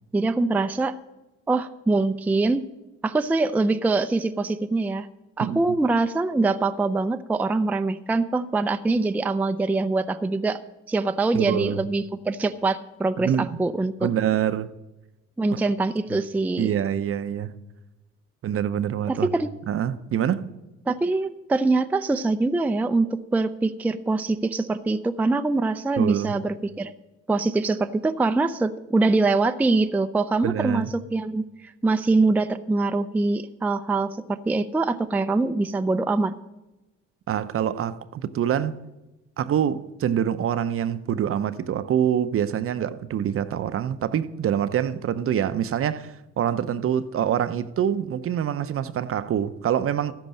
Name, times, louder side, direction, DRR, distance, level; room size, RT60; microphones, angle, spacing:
voice 1, 0.1-1.0 1.5-2.7 3.0-5.1 5.4-10.6 10.9-14.1 15.4-16.7 19.1-19.5 20.9-26.9 27.3-36.4, right 3 dB, 5° right, 0.4 m, -24 dB
voice 2, 11.3-11.8 13.2-13.6 14.0-14.7 16.1-16.2 16.6-17.5 18.4-19.3 19.7-20.4 26.0-26.4 30.4-30.9 37.3-38.8 39.4-50.1, right 9 dB, 50° right, 0.6 m, -25 dB
13.5 x 5.3 x 8.8 m
cardioid pair, 100°, 30 cm